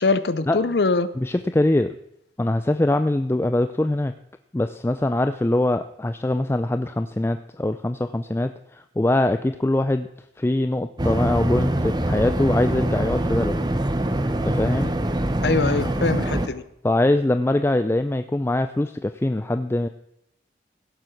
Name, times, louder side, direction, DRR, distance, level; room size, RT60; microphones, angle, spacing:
voice 1, 0.0-1.1 15.4-16.6, left 3 dB, 65° left, 14 dB, 0.7 m, -22 dB
voice 2, 1.2-2.0 2.4-4.1 4.5-10.1 10.4-13.6 14.4-14.9 16.8-19.9, left 1 dB, 15° left, 9 dB, 0.4 m, -23 dB
sound 1, 11.0-16.5, right 1 dB, 25° right, 0.9 m, -24 dB
16.5 x 7.5 x 6.3 m, 0.79 s
head